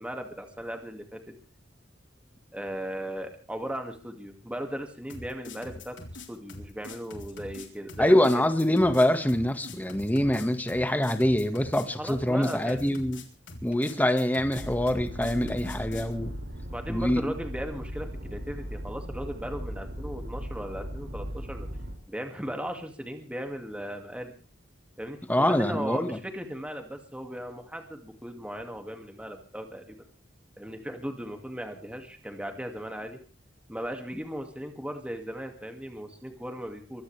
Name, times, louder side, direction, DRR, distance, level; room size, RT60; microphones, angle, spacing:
voice 1, 0.0-1.3 2.5-6.0 6.3-8.1 12.0-13.0 16.7-21.7 22.1-24.3 25.0-29.8 30.6-33.2 33.7-37.0, equal, 5° right, 5 dB, 2.3 m, -37 dB
sound 1, 5.1-16.1, left 2 dB, 70° left, 3.9 m, -43 dB
voice 2, 8.0-13.2 13.6-16.3 16.9-17.2 25.3-26.2, left 1 dB, 10° left, 8 dB, 1.8 m, -24 dB
sound 2, 14.5-21.9, equal, 90° right, 5.9 m, -38 dB
24.0 x 16.5 x 3.4 m, 0.40 s
head